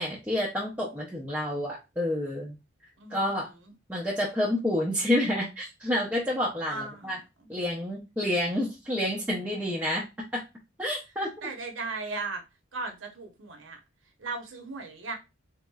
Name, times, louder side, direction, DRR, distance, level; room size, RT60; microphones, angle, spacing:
voice 1, 0.0-2.6 3.1-3.5 3.9-7.2 7.5-10.0 10.3-10.4 10.8-11.3, left 1 dB, 10° right, 0.5 m, -29 dB
voice 2, 3.0-3.7 6.7-7.2 11.4-12.4 12.7-13.8 14.2-15.1, right 3 dB, 75° right, 0.8 m, -37 dB
3.6 x 3.0 x 2.3 m
head